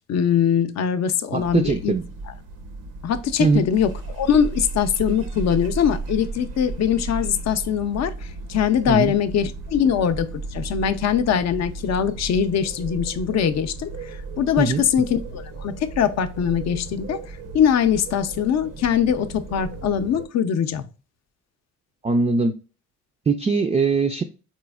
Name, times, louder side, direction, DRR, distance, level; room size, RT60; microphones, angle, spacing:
voice 1, 0.0-1.9 3.0-8.1 8.5-17.2 17.5-20.8, left 8 dB, 60° left, 0.6 m, -22 dB
voice 2, 1.3-2.0 3.4-3.7 8.9-9.1 14.6-14.8 22.0-22.6 23.3-24.2, right 4 dB, 20° right, 0.3 m, -21 dB
sound 1, 1.4-20.3, right 3 dB, 90° right, 0.7 m, -35 dB
4.2 x 3.0 x 2.3 m
cardioid pair, 90°, 30 cm